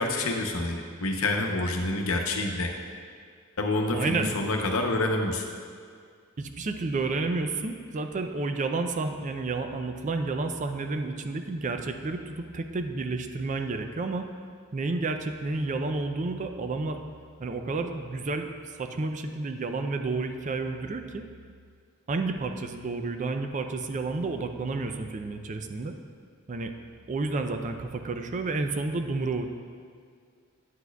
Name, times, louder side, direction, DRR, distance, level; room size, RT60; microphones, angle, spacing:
voice 1, 0.0-2.7 3.6-5.4, left 2 dB, 90° left, 2 dB, 0.8 m, -27 dB
voice 2, 3.9-4.3 6.4-14.3 14.7-17.0 17.4-18.5 18.8-21.3 22.1-26.0 26.5-26.7 27.1-29.5, right 3 dB, 35° right, 6 dB, 0.4 m, -30 dB
9.1 x 8.3 x 2.3 m, 2.1 s
head